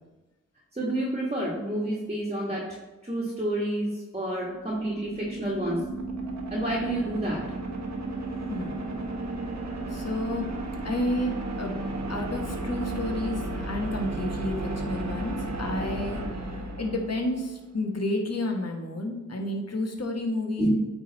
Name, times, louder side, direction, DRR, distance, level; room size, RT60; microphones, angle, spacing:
voice 1, 0.7-5.9 6.5-7.5 20.6-20.7, right 1 dB, 20° right, -4 dB, 1.6 m, -29 dB
sound 1, 4.4-17.5, right 2 dB, 55° right, 1.1 m, -34 dB
voice 2, 8.5-8.8 9.9-10.5 10.8-16.2 16.8-20.7, left 1 dB, 50° left, 2 dB, 1.4 m, -31 dB
8.8 x 3.5 x 4.0 m, 1.1 s
cardioid pair, 40°, 33 cm